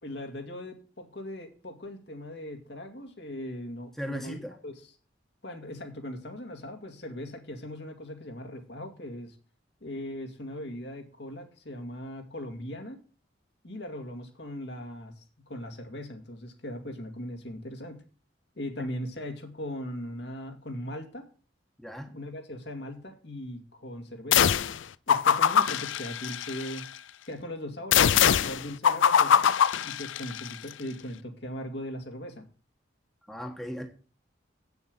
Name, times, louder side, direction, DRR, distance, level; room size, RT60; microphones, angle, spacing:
voice 1, 0.0-4.4 4.6-4.8 5.4-9.4 9.8-13.0 13.6-18.0 18.6-21.3 22.1-24.7 25.1-26.8 27.3-29.4 29.8-32.4, left 1 dB, 65° left, 2.1 m, -39 dB
voice 2, 4.0-4.5 21.8-22.1 33.3-33.9, equal, ahead, 1.3 m, -37 dB
sound 1, 24.3-24.8 25.1-26.8 27.9-30.5, left 8 dB, 90° left, 0.5 m, -23 dB
8.6 x 7.1 x 6.7 m
head